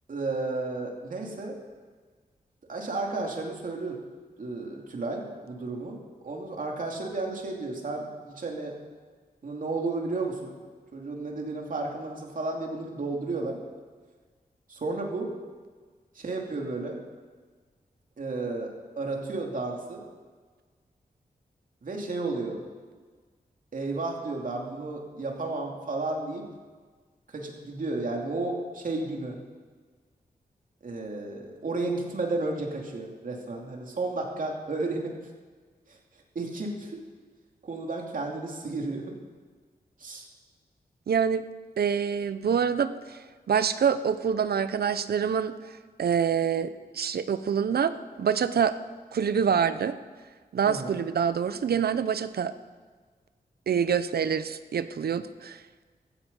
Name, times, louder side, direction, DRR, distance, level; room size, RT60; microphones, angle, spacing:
voice 1, 0.1-1.6 2.7-4.0 4.4-6.0 6.2-8.8 9.4-10.5 10.9-13.6 14.7-15.3 16.1-17.0 18.2-20.0 21.8-22.6 23.7-26.5 27.3-29.4 30.8-35.2 35.9-36.0 36.3-37.0 37.6-39.2 40.0-40.3 50.6-50.9, right 3 dB, 55° right, 1 dB, 2.7 m, -32 dB
voice 2, 41.1-41.4 41.8-43.2 43.5-45.5 46.0-47.9 48.2-48.7 49.1-49.9 50.5-52.5 53.7-55.6, right 7 dB, 75° right, 13 dB, 0.7 m, -26 dB
16.0 x 13.0 x 5.4 m, 1.5 s
wide cardioid pair, 135°, 16 cm